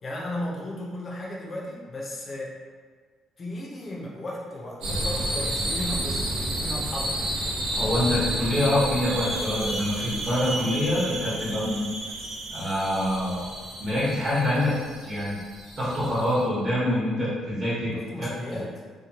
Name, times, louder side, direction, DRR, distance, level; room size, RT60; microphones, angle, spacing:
voice 1, 0.0-2.5 3.4-7.2 17.9-18.7, left 1 dB, 30° left, -3 dB, 0.5 m, -35 dB
sound 1, 4.8-16.4, right 1 dB, 80° right, 0.6 m, -31 dB
voice 2, 7.7-11.8 12.5-13.4 13.8-14.7 15.0-15.4 15.8-17.9 18.2-18.3, left 1 dB, 30° right, -10 dB, 0.9 m, -25 dB
2.9 x 2.2 x 2.7 m, 1.5 s
cardioid pair, 165°, 0 cm